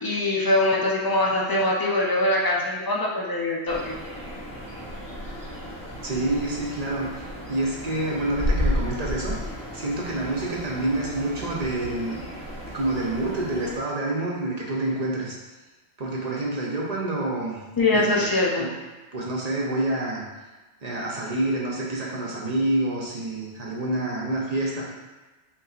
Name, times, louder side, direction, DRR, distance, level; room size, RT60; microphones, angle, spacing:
voice 1, 0.0-3.9 17.8-18.7, left 2 dB, 35° left, -3 dB, 0.4 m, -23 dB
sound 1, 3.7-13.8, equal, 5° left, 1.1 m, -33 dB
voice 2, 6.0-12.2 12.7-15.4 16.0-17.6 17.9-18.3 18.6-18.7 19.1-20.2 20.8-24.9, right 2 dB, 40° right, -3 dB, 0.8 m, -28 dB
4.2 x 3.9 x 2.4 m, 1.2 s
omnidirectional pair, 1.2 m